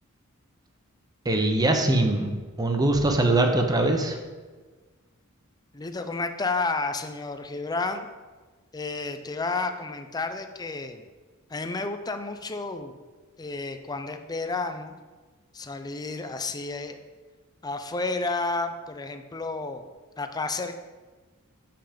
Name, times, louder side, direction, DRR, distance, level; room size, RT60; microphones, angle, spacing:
voice 1, 1.2-2.3 2.6-4.2, right 2 dB, 20° right, 4 dB, 0.8 m, -22 dB
voice 2, 5.7-8.1 8.7-11.1 11.5-12.9 13.4-15.0 15.5-17.0 17.6-19.8 20.2-20.8, left 3 dB, 20° left, 8 dB, 0.5 m, -31 dB
6.8 x 5.8 x 5.1 m, 1.4 s
head